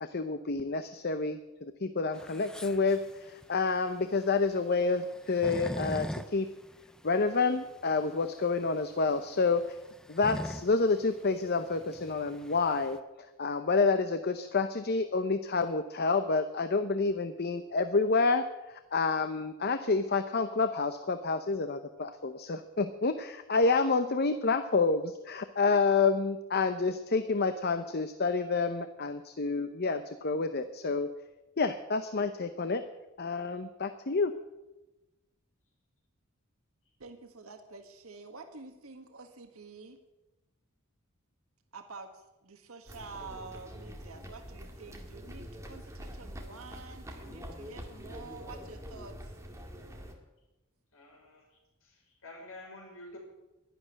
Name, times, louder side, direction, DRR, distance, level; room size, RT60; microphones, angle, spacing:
voice 1, 0.0-6.5 7.0-9.8 10.1-13.0 13.4-31.1 31.6-32.8 33.2-34.3, left 4 dB, 50° left, 9 dB, 0.8 m, -29 dB
sound 1, 2.1-13.0, equal, 5° left, 0.5 m, -42 dB
voice 2, 37.0-40.0 41.7-49.3, right 4 dB, 85° right, 6 dB, 1.6 m, -48 dB
sound 2, 42.9-50.1, equal, 15° right, 2.1 m, -45 dB
voice 3, 50.9-53.2, left 2 dB, 70° left, 0 dB, 5.6 m, -50 dB
11.5 x 11.5 x 9.8 m, 1.0 s
head